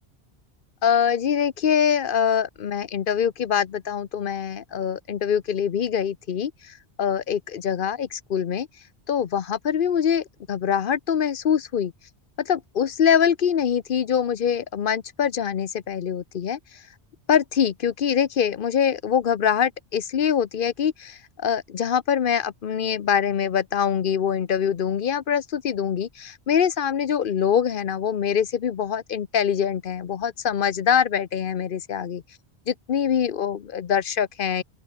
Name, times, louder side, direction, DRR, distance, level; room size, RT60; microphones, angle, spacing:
voice 1, 0.8-8.7 9.1-11.9 12.4-16.8 17.3-32.2 32.7-34.6, left 8 dB, 55° left, 0.9 m, -24 dB
open air
omnidirectional pair, 1.1 m